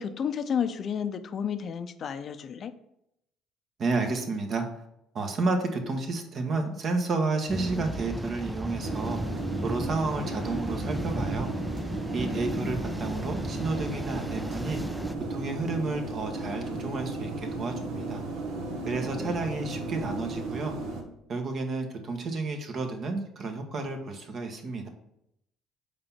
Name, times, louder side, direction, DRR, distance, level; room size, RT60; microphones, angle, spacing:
voice 1, 0.0-2.7 12.2-12.8 18.9-19.4, left 7 dB, 50° left, 10 dB, 0.5 m, -32 dB
voice 2, 3.8-4.7 5.1-11.5 12.1-14.8 15.3-18.2 18.8-20.7 21.3-24.9, right 3 dB, 50° right, 4 dB, 1.3 m, -31 dB
sound 1, 7.5-15.1, right 1 dB, 5° right, 0.3 m, -35 dB
sound 2, 8.8-21.0, right 2 dB, 80° right, 1.3 m, -35 dB
5.2 x 4.2 x 5.7 m, 0.79 s
supercardioid pair, 80°, 0 cm